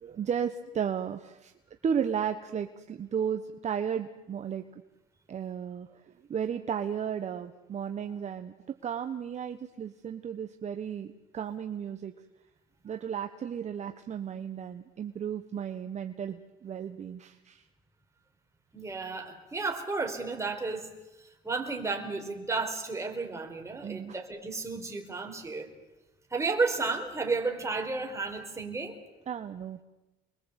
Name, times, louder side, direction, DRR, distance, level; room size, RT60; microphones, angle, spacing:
voice 1, 0.0-1.5 1.8-4.8 5.3-8.5 8.8-12.1 12.8-17.6 23.8-24.2 29.3-29.8, right 8 dB, 45° right, 7 dB, 1.4 m, -34 dB
voice 2, 18.7-20.9 21.4-25.7 26.3-29.0, right 3 dB, 15° right, 3 dB, 4.6 m, -32 dB
28.5 x 22.5 x 8.3 m, 1.0 s
cardioid pair, 110°, 17 cm